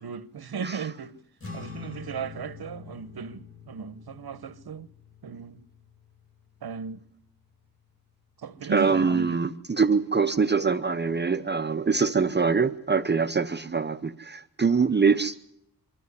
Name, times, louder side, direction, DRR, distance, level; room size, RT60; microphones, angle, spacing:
voice 1, 0.0-1.2 1.5-4.9 5.2-5.6 6.6-7.0 8.4-9.4, right 6 dB, 70° right, 1.2 m, -36 dB
sound 1, 1.4-8.0, left 6 dB, 35° left, 4.5 m, -45 dB
voice 2, 8.7-15.4, right 5 dB, 25° right, 0.7 m, -24 dB
24.5 x 12.5 x 9.7 m
wide cardioid pair, 100°, 38 cm